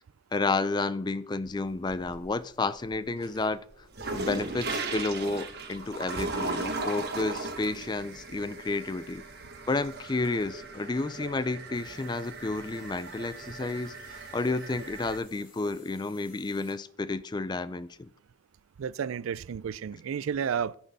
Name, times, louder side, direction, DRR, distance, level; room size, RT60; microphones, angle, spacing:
voice 1, 0.3-3.6 4.1-9.2 9.7-18.1, left 3 dB, 20° left, 0.3 m, -31 dB
sound 1, 1.5-2.4 2.8-15.2, right 3 dB, 50° right, 1.4 m, -38 dB
sound 2, 11.7-16.7, left 4 dB, 40° left, 2.8 m, -58 dB
voice 2, 18.8-20.8, right 7 dB, 80° right, 0.4 m, -31 dB
13.5 x 6.2 x 5.3 m
head